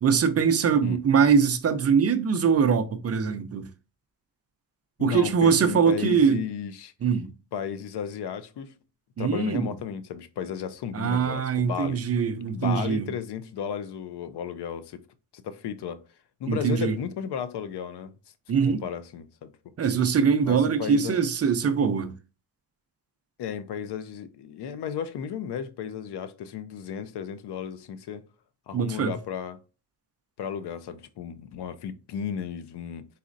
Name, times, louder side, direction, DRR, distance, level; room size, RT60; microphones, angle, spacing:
voice 1, 0.0-3.6 5.0-6.4 7.0-7.3 9.2-9.7 10.9-13.1 16.5-17.0 18.5-18.8 19.8-22.1 28.7-29.1, right 6 dB, 40° right, 0.5 m, -22 dB
voice 2, 5.0-6.9 7.5-8.7 9.2-12.0 12.5-15.0 15.3-16.0 16.4-18.1 18.6-19.5 20.4-21.2 23.4-28.2 28.7-29.6 30.4-33.1, left 8 dB, 80° left, 0.6 m, -34 dB
4.1 x 4.1 x 2.5 m
wide cardioid pair, 170°, 39 cm